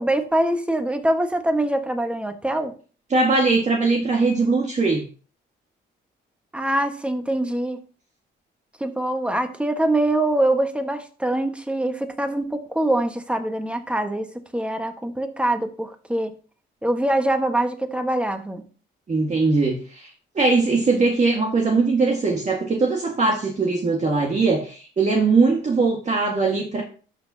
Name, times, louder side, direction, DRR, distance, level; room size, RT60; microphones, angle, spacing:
voice 1, 0.0-2.7 6.5-7.8 8.8-16.3 16.8-18.6, right 1 dB, 5° right, 6 dB, 1.4 m, -24 dB
voice 2, 3.1-5.1 19.1-20.1 20.4-26.8, right 3 dB, 35° right, 0 dB, 1.8 m, -20 dB
12.0 x 6.1 x 2.8 m, 0.40 s
cardioid pair, 90°, 20 cm